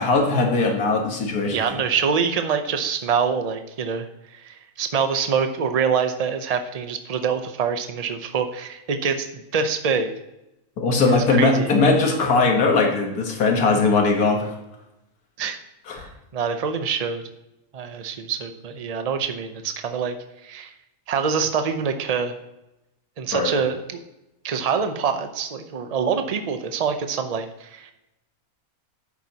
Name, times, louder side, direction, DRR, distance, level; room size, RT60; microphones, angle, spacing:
voice 1, 0.0-1.6 10.8-14.5 15.9-16.1 23.3-23.5, left 3 dB, 80° left, 2 dB, 1.9 m, -20 dB
voice 2, 1.5-10.1 11.1-11.7 15.4-15.6 16.0-16.1 16.3-17.2 17.7-20.7 21.1-22.4 23.2-24.0 24.4-27.9, right 6 dB, 40° right, 7 dB, 0.6 m, -25 dB
10.5 x 8.4 x 2.9 m, 0.93 s
omnidirectional pair, 1.6 m